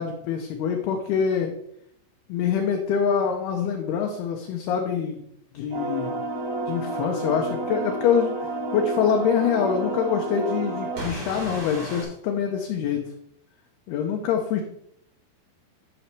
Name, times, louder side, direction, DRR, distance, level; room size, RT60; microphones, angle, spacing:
voice 1, 0.0-1.5 2.3-5.2 5.5-6.1 6.7-8.3 8.7-13.0 13.9-14.6, left 7 dB, 75° left, 2 dB, 2.5 m, -25 dB
sound 1, 5.7-12.0, right 2 dB, 85° right, 6.1 m, -30 dB
12.0 x 6.2 x 3.3 m, 0.73 s
omnidirectional pair, 5.1 m